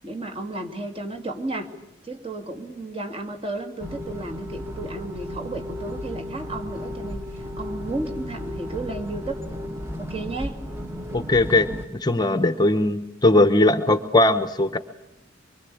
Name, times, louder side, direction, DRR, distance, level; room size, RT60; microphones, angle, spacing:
voice 1, 0.0-1.7 2.0-9.5 10.0-10.6 13.7-13.8, right 2 dB, 30° right, 3 dB, 2.7 m, -33 dB
sound 1, 3.8-11.9, left 1 dB, 10° right, 1.7 m, -34 dB
voice 2, 11.1-14.8, left 2 dB, 20° left, 10 dB, 1.0 m, -19 dB
24.5 x 24.5 x 8.6 m, 0.89 s
head